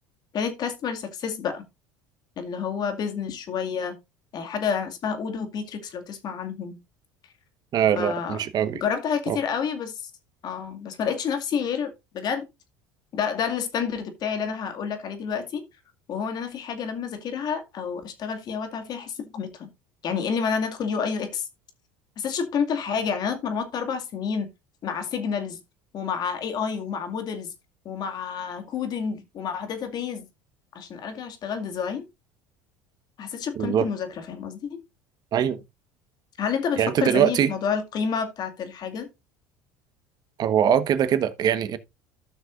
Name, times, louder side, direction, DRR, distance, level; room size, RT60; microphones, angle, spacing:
voice 1, 0.3-1.6 2.4-4.0 4.3-6.8 8.0-8.4 8.7-10.1 10.4-12.5 13.1-15.6 16.1-19.7 20.0-21.5 22.2-24.5 24.8-25.6 25.9-27.5 27.8-30.3 30.7-32.0 33.2-34.8 36.4-39.1, left 6 dB, 50° left, 2.2 m, -29 dB
voice 2, 7.7-8.8 9.3-9.4 33.6-33.9 35.3-35.6 36.8-37.5 40.4-41.8, right 9 dB, 50° right, 1.3 m, -22 dB
14.5 x 6.2 x 2.6 m
hypercardioid pair, 85°, 9 cm